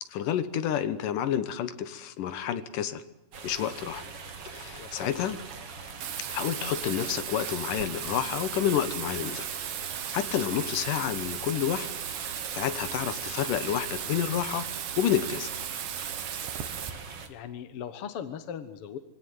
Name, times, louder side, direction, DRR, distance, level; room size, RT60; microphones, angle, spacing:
voice 1, 0.1-3.0 3.4-4.0 4.5-5.4 6.3-9.5 10.1-11.9 12.2-14.6 15.0-15.5, left 10 dB, 75° left, 13 dB, 2.7 m, -29 dB
sound 1, 3.3-17.3, right 5 dB, 45° right, 2.9 m, -42 dB
voice 2, 4.8-5.3 16.2-16.5 17.3-19.0, left 8 dB, 60° left, 11 dB, 1.7 m, -39 dB
Bathtub (filling or washing), 6.0-16.9, right 9 dB, 70° right, 3.1 m, -36 dB
24.5 x 17.5 x 9.5 m, 0.96 s
omnidirectional pair, 3.9 m